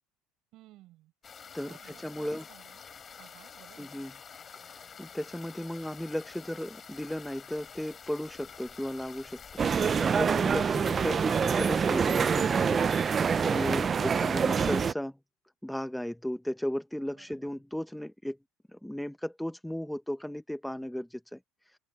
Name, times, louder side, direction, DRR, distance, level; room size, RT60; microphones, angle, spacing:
voice 1, 0.5-2.8 3.1-3.9 17.1-17.5, right 16 dB, 60° right, 7.6 m, -57 dB
sound 1, 1.2-13.9, left 6 dB, 30° left, 3.9 m, -48 dB
voice 2, 1.5-2.4 3.8-4.1 4.7-9.4 9.7-15.2 15.6-18.4 18.7-21.4, left 1 dB, 5° left, 1.1 m, -35 dB
sound 2, 9.6-14.9, right 6 dB, 30° right, 0.4 m, -26 dB
open air
supercardioid pair, 105°, 0 cm